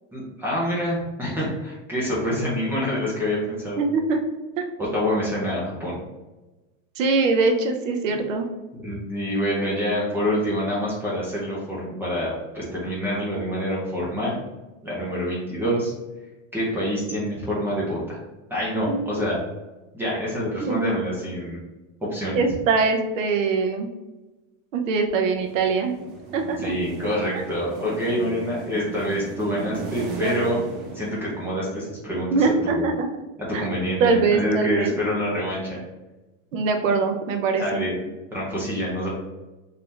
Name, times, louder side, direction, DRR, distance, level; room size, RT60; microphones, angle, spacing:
voice 1, 0.1-3.8 4.8-6.0 8.8-14.4 14.8-15.9 16.5-18.2 18.5-19.4 19.9-21.6 22.0-22.4 26.6-30.6 30.9-32.9 33.4-35.8 37.6-37.9 38.3-39.1, equal, 5° right, -6 dB, 0.8 m, -26 dB
voice 2, 3.8-4.2 4.6-4.7 7.0-8.4 18.9-19.0 20.6-20.8 22.3-23.9 24.7-25.9 26.3-26.7 30.2-30.5 32.3-33.1 33.5-33.7 34.0-34.9 36.5-37.9, right 4 dB, 85° right, 5 dB, 0.8 m, -22 dB
sound 1, 25.3-31.8, right 4 dB, 45° right, 0.9 m, -37 dB
4.0 x 2.8 x 3.3 m, 1.1 s
supercardioid pair, 160°, 37 cm